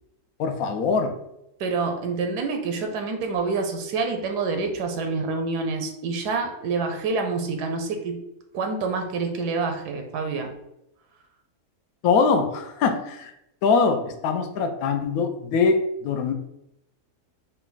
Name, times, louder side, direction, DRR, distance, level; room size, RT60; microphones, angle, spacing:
voice 1, 0.4-1.2 12.0-13.3 13.6-16.3, left 5 dB, 70° left, 6 dB, 0.9 m, -22 dB
voice 2, 1.6-8.2 8.5-10.5, right 4 dB, 85° right, 5 dB, 1.2 m, -27 dB
4.0 x 2.3 x 3.8 m, 0.84 s
omnidirectional pair, 1.7 m